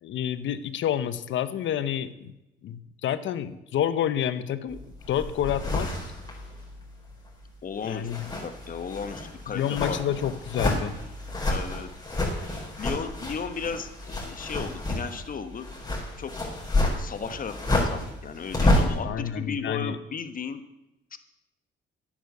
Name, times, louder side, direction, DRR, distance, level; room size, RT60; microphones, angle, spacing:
voice 1, 0.0-2.3 2.6-4.8 5.1-5.9 7.8-8.3 9.5-10.9 19.0-20.0, left 10 dB, 70° left, 13 dB, 0.8 m, -29 dB
sound 1, 4.7-7.5 7.8-19.0, left 1 dB, 20° left, 5.0 m, -29 dB
voice 2, 7.6-8.1 8.4-10.0 11.5-11.9 12.8-15.7 16.2-16.3 16.9-20.6 21.1-21.2, left 6 dB, 45° left, 10 dB, 1.2 m, -35 dB
10.5 x 8.7 x 6.7 m, 0.93 s
cardioid pair, 90°, 20 cm